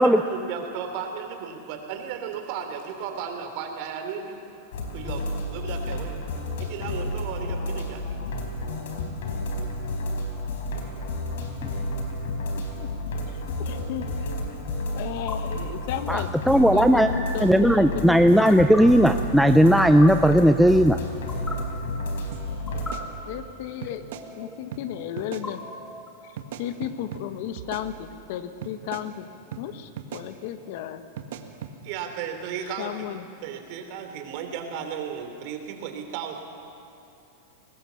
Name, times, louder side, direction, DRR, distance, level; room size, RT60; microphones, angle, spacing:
voice 1, 0.0-4.4 4.9-6.2 6.6-8.0 31.8-33.1 33.4-36.4, right 7 dB, 55° right, 5 dB, 3.4 m, -34 dB
sound 1, 4.7-22.9, left 1 dB, 80° left, 4.3 m, -31 dB
sound 2, 11.4-11.7 13.5-13.7 15.1-15.4 16.9-17.2 18.3-18.8 19.6-20.1 21.1-21.5 22.5-22.9 23.9-24.5 25.2-26.1, left 3 dB, 15° left, 4.5 m, -39 dB
voice 2, 12.5-14.3 15.0-18.6 23.2-25.6 26.2-29.3 29.6-31.1 32.8-33.3, left 11 dB, 60° left, 10 dB, 1.4 m, -34 dB
voice 3, 16.1-17.1 17.4-21.0, equal, ahead, 7 dB, 0.6 m, -17 dB
sound 3, 22.3-22.4 22.8-23.5 23.8-24.3 24.7-24.8 25.2-25.5 26.4-27.2 27.6-28.3 28.6-29.1 29.5-29.6 30.0-30.3 31.2-31.7, right 9 dB, 70° right, 1.7 m, -38 dB
23.0 x 19.5 x 7.2 m, 2.9 s
hypercardioid pair, 125°, 0 cm